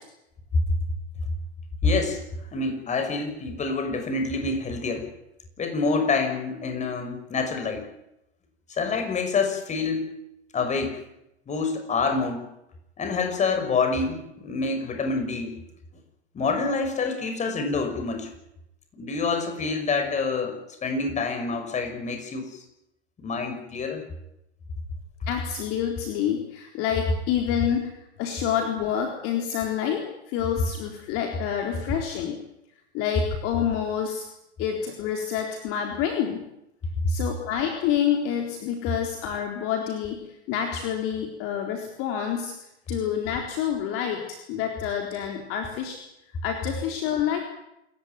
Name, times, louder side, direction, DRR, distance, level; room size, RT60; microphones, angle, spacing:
voice 1, 1.8-2.2 2.5-5.0 5.6-7.8 8.7-10.1 10.5-11.0 11.5-12.4 13.0-15.5 16.3-18.3 19.0-22.6 23.2-24.0, left 4 dB, 20° left, 6 dB, 6.1 m, -27 dB
voice 2, 25.3-27.9 28.2-32.4 32.9-34.2 34.6-36.4 37.1-40.2 40.5-42.5 42.9-46.0 46.4-47.4, left 9 dB, 40° left, 3 dB, 3.9 m, -28 dB
28.0 x 15.0 x 9.3 m, 0.85 s
hypercardioid pair, 105°, 34 cm